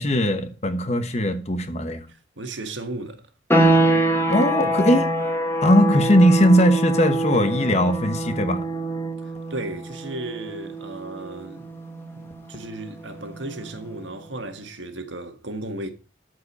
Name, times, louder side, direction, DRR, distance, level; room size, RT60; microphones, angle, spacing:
voice 1, 0.0-2.1 4.3-5.1 5.6-8.7, equal, 35° left, 1.1 m, -19 dB
voice 2, 2.1-3.2 9.2-11.7 12.1-15.9, right 2 dB, 85° right, 1.5 m, -35 dB
sound 1, 3.5-14.0, right 1 dB, 15° left, 1.4 m, -25 dB
13.0 x 4.8 x 5.5 m
head